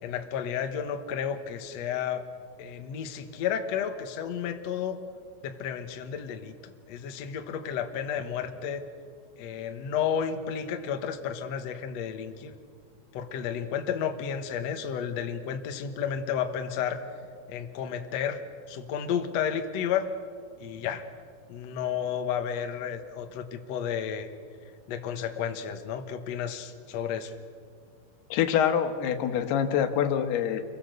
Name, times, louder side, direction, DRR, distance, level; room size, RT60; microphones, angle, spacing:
voice 1, 0.0-2.2 2.6-5.0 5.4-8.8 9.4-12.5 13.1-17.0 17.5-20.1 20.6-21.0 21.5-24.3 24.9-27.3, left 8 dB, 60° left, 7 dB, 2.0 m, -32 dB
voice 2, 28.3-30.6, left 9 dB, 85° left, 8 dB, 3.3 m, -25 dB
28.5 x 23.0 x 6.7 m, 2.1 s
omnidirectional pair, 4.5 m